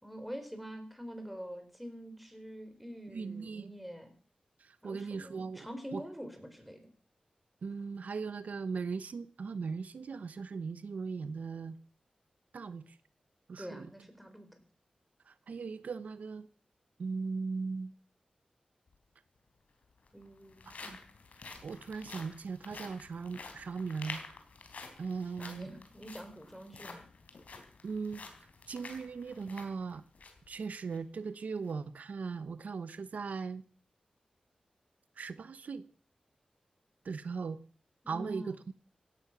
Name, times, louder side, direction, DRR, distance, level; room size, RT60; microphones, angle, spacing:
voice 1, 0.0-4.1 4.8-6.9 13.6-14.6 20.1-21.0 25.4-27.1 38.0-38.6, equal, ahead, 6 dB, 4.6 m, -45 dB
voice 2, 3.1-3.7 4.6-6.0 7.6-11.8 12.5-13.0 13.5-13.9 15.3-16.5 17.0-17.9 20.7-21.0 21.6-24.2 25.0-25.7 27.8-28.2 28.7-30.0 30.5-33.6 35.2-35.9 37.0-37.6 38.1-38.7, right 5 dB, 80° right, 14 dB, 0.9 m, -38 dB
sound 1, 18.9-19.0 19.9-30.5 30.9-31.0 31.5-31.7, left 4 dB, 75° left, 3.9 m, -49 dB
17.0 x 12.5 x 6.1 m, 0.41 s
wide cardioid pair, 85°, 3 cm